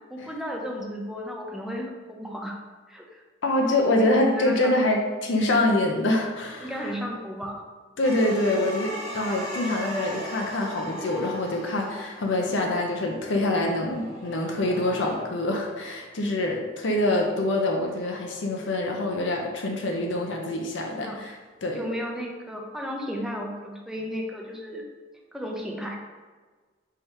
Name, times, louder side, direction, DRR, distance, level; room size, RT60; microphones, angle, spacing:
voice 1, 0.1-2.6 2.9-3.2 4.0-4.8 6.6-7.6 12.4-12.6 20.9-21.2 21.7-24.9 25.3-26.0, equal, ahead, 0 dB, 0.5 m, -34 dB
voice 2, 3.4-6.9 8.0-21.9, left 1 dB, 70° left, 1 dB, 0.5 m, -25 dB
sound 1, 8.0-15.2, equal, 40° right, 1.1 m, -38 dB
3.5 x 2.8 x 4.5 m, 1.4 s
head